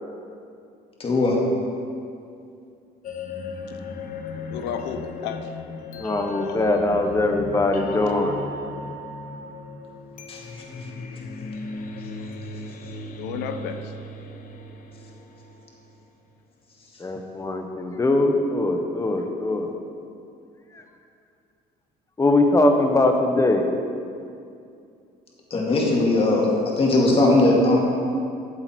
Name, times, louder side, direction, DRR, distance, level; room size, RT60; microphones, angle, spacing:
voice 1, 1.0-1.4 10.3-10.4 25.5-27.8, left 2 dB, 35° left, -3 dB, 2.2 m, -19 dB
sound 1, 3.0-16.0, left 3 dB, 55° left, 0.9 m, -36 dB
voice 2, 4.5-5.5 6.4-6.6 13.2-13.9, left 7 dB, 90° left, 8 dB, 0.9 m, -32 dB
voice 3, 5.9-8.4 17.0-19.7 20.7-20.8 22.2-23.7, left 2 dB, 20° left, 4 dB, 1.2 m, -21 dB
13.5 x 7.8 x 4.5 m, 2.5 s
cardioid pair, 110°, 17 cm